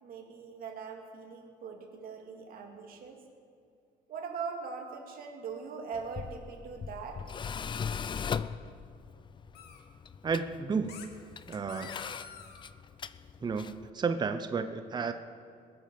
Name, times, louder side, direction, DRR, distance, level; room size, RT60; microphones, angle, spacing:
voice 1, 0.0-3.2 4.1-7.2, right 5 dB, 60° right, 2 dB, 2.4 m, -41 dB
Tools, 5.9-13.9, left 6 dB, 30° left, 0.4 m, -40 dB
sound 1, 7.7-8.3 9.5-9.8 10.9-11.1 11.5-12.7, left 7 dB, 70° left, 1.7 m, -49 dB
voice 2, 10.2-11.0 11.5-11.9 13.4-15.1, right 5 dB, 25° right, 9 dB, 0.7 m, -32 dB
21.0 x 7.5 x 7.0 m, 2.4 s
cardioid pair, 110°, 17 cm